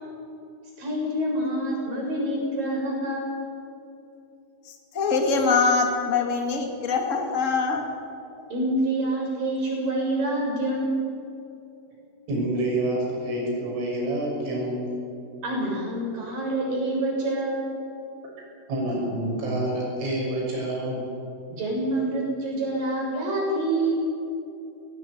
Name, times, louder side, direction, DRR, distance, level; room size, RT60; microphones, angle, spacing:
voice 1, 0.8-3.5 8.5-11.0 15.4-17.7 21.5-24.0, right 1 dB, 45° right, -2 dB, 8.7 m, -27 dB
voice 2, 4.9-7.8, left 4 dB, 75° left, 2 dB, 0.7 m, -23 dB
voice 3, 12.3-14.9 18.7-21.1, right 1 dB, 75° right, -1 dB, 8.9 m, -27 dB
20.0 x 19.0 x 9.5 m, 2.7 s
omnidirectional pair, 5.8 m